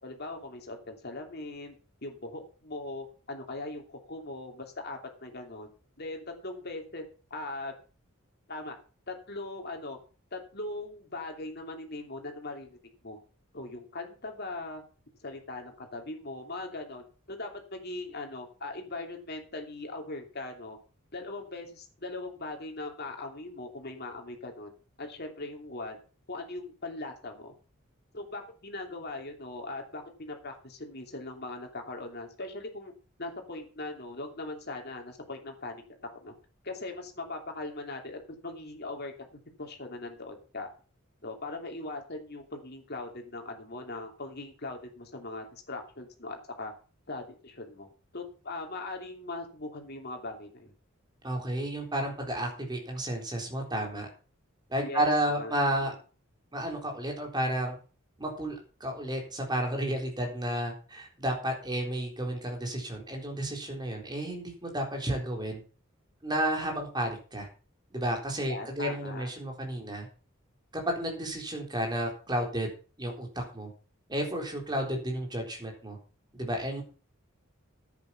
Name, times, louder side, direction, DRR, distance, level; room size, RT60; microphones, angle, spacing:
voice 1, 0.0-1.7 2.0-5.7 6.0-7.0 7.3-7.7 8.5-8.8 9.1-10.0 10.3-12.8 13.0-13.2 13.5-14.8 15.2-20.8 21.1-24.7 25.0-26.0 26.3-27.5 28.1-32.9 33.2-35.8 36.1-36.3 36.6-40.7 41.2-46.7 47.1-47.9 48.1-50.7 54.8-55.9 68.5-69.3, left 2 dB, 50° left, 3 dB, 2.8 m, -40 dB
voice 2, 51.2-54.1 54.7-55.9 56.5-57.8 58.2-65.6 66.2-67.5 67.9-70.1 70.7-72.7 73.0-73.7 74.1-76.0 76.3-76.8, right 1 dB, 20° right, 1 dB, 3.9 m, -32 dB
10.5 x 9.0 x 5.8 m, 0.37 s
head